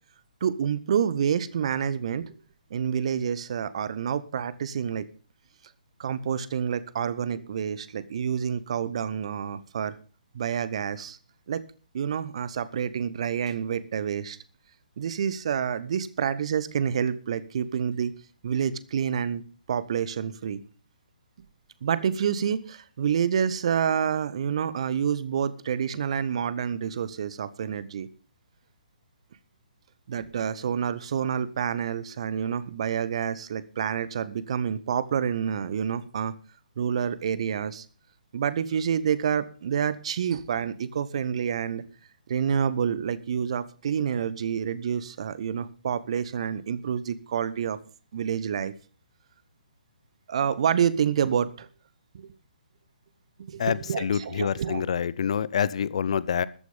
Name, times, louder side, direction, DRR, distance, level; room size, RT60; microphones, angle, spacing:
voice 1, 0.4-2.3 2.7-5.1 6.0-10.0 10.3-11.2 11.5-11.6 11.9-14.4 15.0-18.1 18.4-19.4 19.7-20.6 21.8-28.1 30.1-36.3 36.8-37.8 38.3-41.8 42.3-47.8 48.1-48.7 50.3-51.7 52.1-52.3 53.5-54.8, right 8 dB, 45° right, 16 dB, 1.0 m, -28 dB
voice 2, 53.6-56.4, left 8 dB, 45° left, 19 dB, 0.7 m, -27 dB
13.5 x 9.4 x 5.5 m, 0.39 s
figure-of-eight pair, 130°, 5 cm